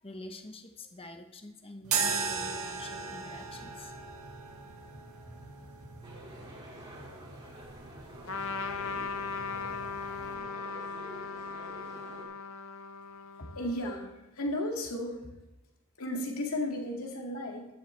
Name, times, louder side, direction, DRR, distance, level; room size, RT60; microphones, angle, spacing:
voice 1, 0.0-4.0, left 2 dB, 25° left, 5 dB, 1.1 m, -46 dB
sound 1, 1.8-10.4, right 5 dB, 75° right, 1.9 m, -38 dB
sound 2, 6.0-12.3, right 1 dB, 25° right, 3.0 m, -49 dB
Trumpet, 8.3-14.1, left 5 dB, 65° left, 0.9 m, -38 dB
voice 2, 13.4-15.3 16.0-17.7, left 1 dB, 80° left, 0 dB, 2.3 m, -34 dB
14.0 x 11.0 x 3.4 m, 1.0 s
head